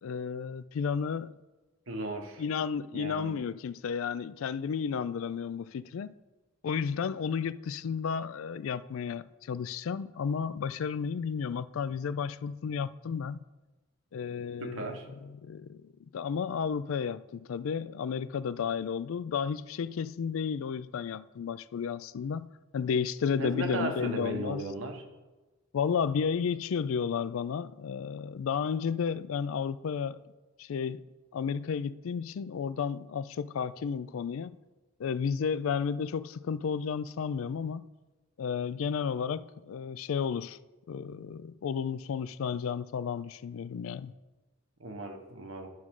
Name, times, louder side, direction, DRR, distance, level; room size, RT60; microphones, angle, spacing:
voice 1, 0.0-1.3 2.4-6.1 6.6-13.4 14.1-22.5 22.7-24.6 25.7-30.2 30.6-31.0 31.3-34.6 35.0-37.9 38.4-40.6 40.9-44.1, left 6 dB, 80° left, 0.4 m, -32 dB
voice 2, 1.9-2.4 2.9-3.4 14.6-15.1 23.4-25.0 44.8-45.7, right 2 dB, 75° right, 1.1 m, -36 dB
11.0 x 6.1 x 3.7 m
head